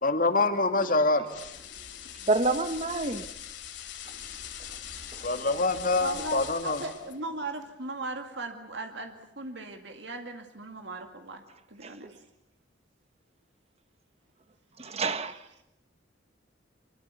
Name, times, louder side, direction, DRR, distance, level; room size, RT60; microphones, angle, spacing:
voice 1, 0.0-1.3 5.2-6.8, left 3 dB, 45° left, 2.2 m, -25 dB
sound 1, 1.3-7.2, left 9 dB, 65° left, 3.0 m, -42 dB
voice 2, 2.3-3.2 14.8-15.4, right 3 dB, 35° right, 1.1 m, -27 dB
voice 3, 6.0-11.4 11.7-12.2 14.8-15.4, right 2 dB, 65° right, 2.2 m, -38 dB
25.5 x 22.5 x 8.3 m
head